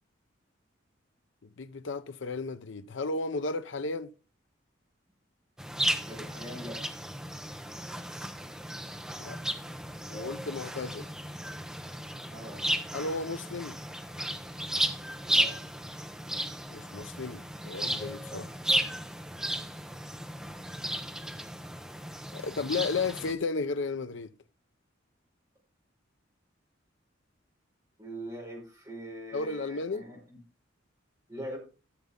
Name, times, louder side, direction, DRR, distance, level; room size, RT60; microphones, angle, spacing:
voice 1, 1.6-4.1 9.2-9.4 10.1-11.1 12.9-13.8 16.7-18.5 22.3-24.3 29.3-30.1, left 3 dB, 70° left, 0.6 m, -34 dB
sound 1, 5.6-23.3, right 1 dB, 5° right, 0.8 m, -34 dB
voice 2, 5.9-6.8 12.3-12.6 15.3-15.6 28.0-30.4 31.3-31.6, right 1 dB, 20° right, 5.1 m, -42 dB
13.0 x 6.9 x 3.7 m
head